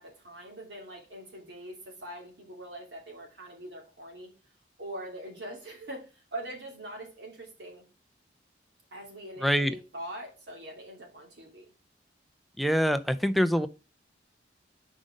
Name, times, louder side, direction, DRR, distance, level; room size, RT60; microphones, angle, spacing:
voice 1, 0.0-4.3 4.8-7.8 8.9-11.7, right 1 dB, 70° right, 2.8 m, -43 dB
voice 2, 9.4-9.7 12.6-13.7, equal, ahead, 0.4 m, -25 dB
5.5 x 5.1 x 5.0 m
head